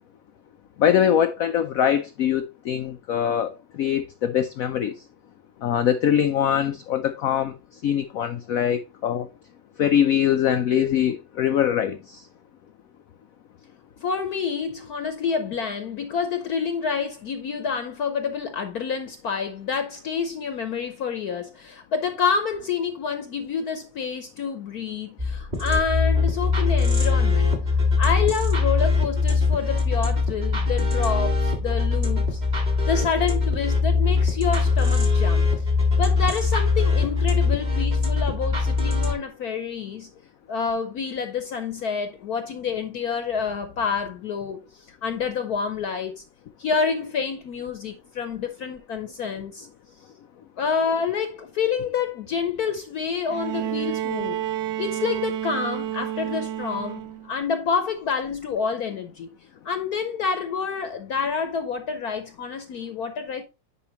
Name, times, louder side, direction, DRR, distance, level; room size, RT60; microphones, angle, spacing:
voice 1, 0.8-5.0 5.6-9.3 9.8-12.3, left 9 dB, 85° left, 0.7 m, -23 dB
voice 2, 14.0-27.5 28.0-32.4 32.9-35.5 36.0-40.1 40.5-46.2 46.6-49.7 50.6-54.4 54.8-59.3 59.6-63.4, left 6 dB, 60° left, 1.1 m, -28 dB
sound 1, 25.2-39.1, left 4 dB, 25° right, 1.6 m, -22 dB
Bowed string instrument, 53.3-57.3 58.6-58.7, right 13 dB, 70° right, 0.9 m, -30 dB
9.7 x 5.0 x 2.9 m
omnidirectional pair, 2.1 m